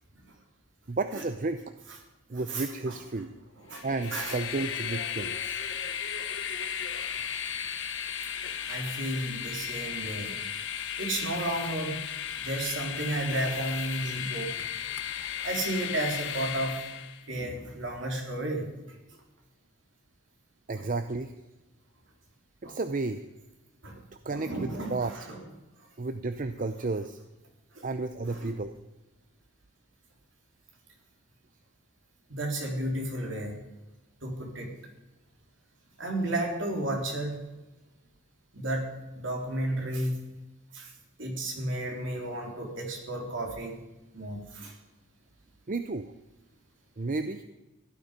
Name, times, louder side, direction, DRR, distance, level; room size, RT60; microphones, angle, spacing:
voice 1, 0.9-1.6 2.3-3.3 3.8-5.6 20.7-21.3 22.6-23.2 24.3-25.3 26.0-27.2 27.8-28.7 45.7-46.1 47.0-47.4, right 3 dB, 40° right, 10 dB, 0.6 m, -32 dB
voice 2, 2.5-3.0 3.6-4.4 7.1-7.6 8.7-10.4 11.0-12.0 12.4-14.6 15.4-16.8 17.3-19.0 22.6-22.8 23.8-24.0 24.3-25.4 27.7-27.9 28.3-28.5 32.3-33.5 34.2-34.7 36.0-37.4 38.5-38.9 39.1-40.2 40.7-40.9 41.2-43.8 44.1-44.8, right 1 dB, 65° right, 1 dB, 3.6 m, -33 dB
Train, 3.8-17.2, left 8 dB, 60° left, 1.0 m, -35 dB
16.0 x 12.0 x 5.2 m, 1.0 s
head